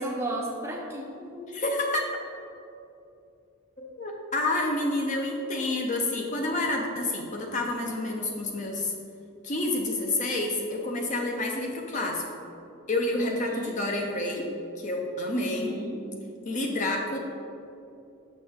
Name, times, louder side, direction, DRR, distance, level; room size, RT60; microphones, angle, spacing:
voice 1, 0.0-1.7 13.2-13.8 15.3-16.0, right 1 dB, 10° right, -2 dB, 0.7 m, -34 dB
voice 2, 1.5-2.2 3.8-8.9 9.4-12.2 12.9-14.5 14.8-15.7 16.5-17.2, left 2 dB, 35° left, 1 dB, 0.6 m, -29 dB
6.1 x 6.1 x 3.6 m, 2.7 s
head